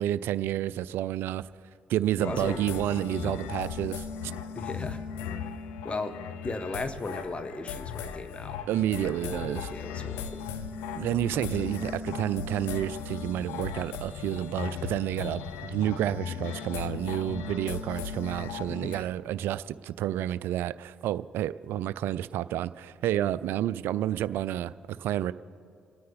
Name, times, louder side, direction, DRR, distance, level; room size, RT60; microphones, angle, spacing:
voice 1, 0.0-1.4 1.9-4.0 8.7-9.7 11.0-25.3, right 12 dB, 70° right, 17 dB, 0.4 m, -30 dB
sound 1, 2.2-19.0, left 7 dB, 75° left, 0.6 m, -37 dB
voice 2, 2.2-2.7 4.5-5.0 5.8-8.6 9.0-10.5 11.3-11.4 18.7-19.1, left 2 dB, 30° left, 10 dB, 1.2 m, -37 dB
26.5 x 9.4 x 4.1 m, 2.5 s
hypercardioid pair, 45°, 4 cm